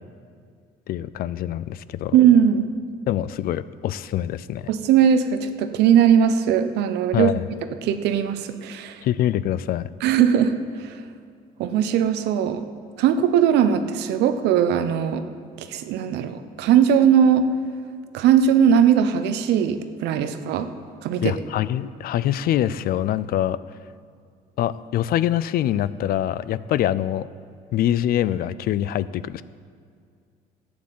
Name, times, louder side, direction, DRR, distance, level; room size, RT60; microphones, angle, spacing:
voice 1, 0.9-2.2 3.1-4.7 7.1-7.5 9.0-9.9 21.2-23.6 24.6-27.3 27.7-29.4, left 12 dB, 60° left, 17 dB, 0.4 m, -24 dB
voice 2, 2.1-2.7 4.7-7.3 7.8-9.0 10.0-10.5 10.8-11.0 11.6-12.6 13.0-15.2 15.6-17.5 18.1-20.7 21.0-21.3, right 8 dB, 85° right, 10 dB, 0.8 m, -19 dB
12.0 x 8.7 x 7.5 m, 2.2 s
cardioid pair, 110°, 17 cm